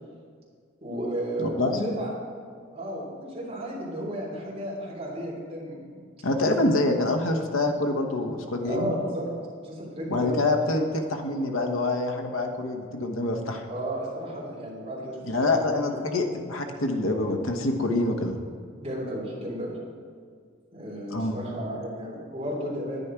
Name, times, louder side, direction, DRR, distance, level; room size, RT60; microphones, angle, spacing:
voice 1, 0.8-2.1 2.7-5.9 6.4-6.5 8.6-9.2 9.6-10.6 13.7-15.2 15.5-16.0 18.8-19.7 20.7-23.0, right 1 dB, 30° right, -5 dB, 3.4 m, -33 dB
voice 2, 1.6-1.9 6.2-8.9 10.1-13.6 15.3-18.4 21.1-21.4, left 2 dB, 80° left, 4 dB, 1.1 m, -26 dB
10.5 x 10.0 x 4.6 m, 2.1 s
head